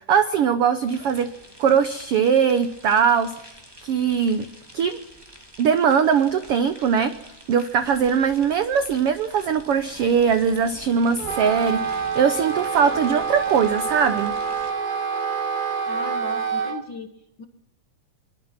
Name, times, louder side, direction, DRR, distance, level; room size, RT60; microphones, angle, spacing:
voice 1, 0.1-1.3 1.6-3.5 3.8-4.5 4.7-5.0 5.6-7.1 7.5-14.3, right 7 dB, 85° right, 11 dB, 1.2 m, -21 dB
sound 1, 0.9-14.7, right 1 dB, 5° right, 2.7 m, -46 dB
Wind instrument woodwind instrument, 11.2-16.8, right 6 dB, 55° right, 1.1 m, -27 dB
voice 2, 15.9-17.1 17.4-17.5, left 3 dB, 60° left, 6 dB, 1.2 m, -36 dB
23.0 x 21.5 x 5.9 m, 0.82 s
omnidirectional pair, 3.8 m